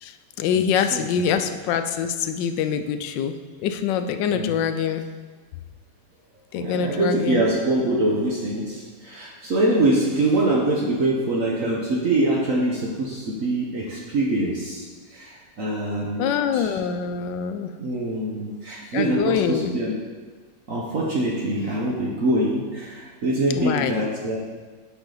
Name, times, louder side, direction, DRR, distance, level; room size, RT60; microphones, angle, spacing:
voice 1, 0.0-5.1 6.5-7.4 16.2-17.7 18.9-19.7 23.5-23.9, left 7 dB, 80° left, 9 dB, 1.2 m, -25 dB
voice 2, 6.6-14.8 15.1-16.7 17.8-20.0 20.7-24.4, right 1 dB, 55° right, -2 dB, 1.1 m, -24 dB
8.1 x 5.8 x 3.9 m, 1.4 s
omnidirectional pair, 2.0 m